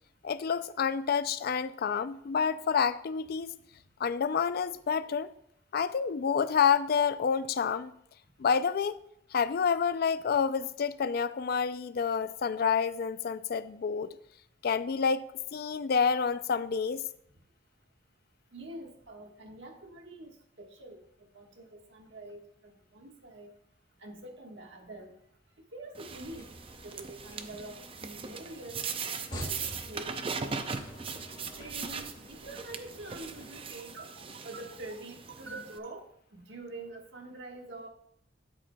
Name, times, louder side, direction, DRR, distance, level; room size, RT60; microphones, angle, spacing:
voice 1, 0.2-3.5 4.0-5.3 5.7-7.9 8.4-9.0 9.3-14.2 14.6-17.0, left 6 dB, 55° left, 0.4 m, -28 dB
voice 2, 18.5-21.0 21.3-23.5 24.0-25.1 25.7-26.5 26.8-30.5 31.5-36.0 36.3-37.9, right 2 dB, 80° right, 1.5 m, -45 dB
sound 1, 25.9-35.8, right 5 dB, 30° right, 0.5 m, -40 dB
sound 2, 26.0-33.9, equal, 25° left, 2.0 m, -48 dB
12.5 x 7.6 x 2.3 m
head